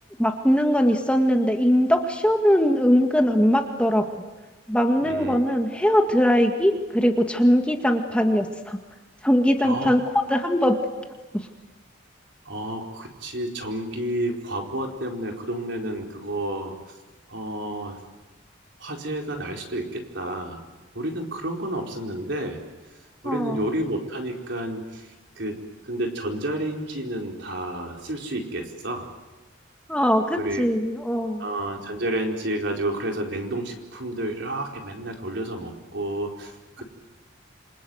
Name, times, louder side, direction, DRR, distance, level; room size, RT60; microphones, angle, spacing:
voice 1, 0.2-4.0 4.7-8.8 9.2-10.0 10.3-10.8 11.3-11.5 23.2-23.6 29.9-31.5, equal, 5° left, 3 dB, 1.9 m, -21 dB
voice 2, 5.0-5.4 9.6-9.9 12.4-16.9 17.3-18.0 18.8-20.6 20.9-22.6 23.2-29.1 30.4-30.7 31.4-36.8, right 1 dB, 60° right, 1 dB, 4.7 m, -30 dB
28.0 x 26.5 x 8.1 m, 1.2 s
head